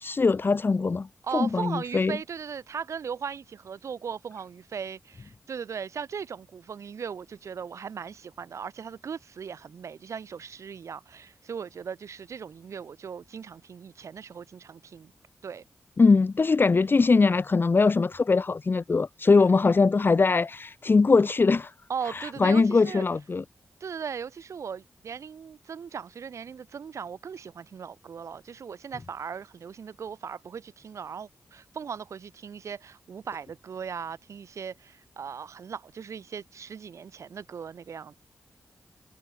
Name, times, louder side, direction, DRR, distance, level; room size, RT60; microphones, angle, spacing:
voice 1, 0.0-1.1 1.3-2.2 16.0-21.7 22.0-23.4, left 4 dB, 45° left, 0.9 m, -22 dB
voice 2, 1.2-15.1 15.4-15.6 21.9-23.0 23.8-38.2, right 6 dB, 75° right, 4.0 m, -38 dB
cardioid pair, 55°, 5 cm